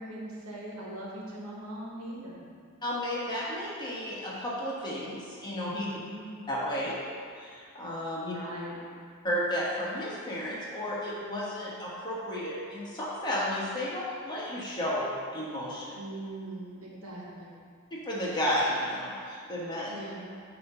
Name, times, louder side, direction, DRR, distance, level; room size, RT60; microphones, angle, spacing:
voice 1, 0.0-2.4 5.9-6.3 8.3-8.7 16.0-17.5 19.9-20.2, right 1 dB, 85° right, -4 dB, 1.4 m, -40 dB
voice 2, 2.8-5.9 6.5-7.0 7.3-8.3 9.2-16.0 17.9-19.9, equal, 20° left, -7 dB, 1.3 m, -32 dB
7.6 x 3.0 x 5.5 m, 2.2 s
head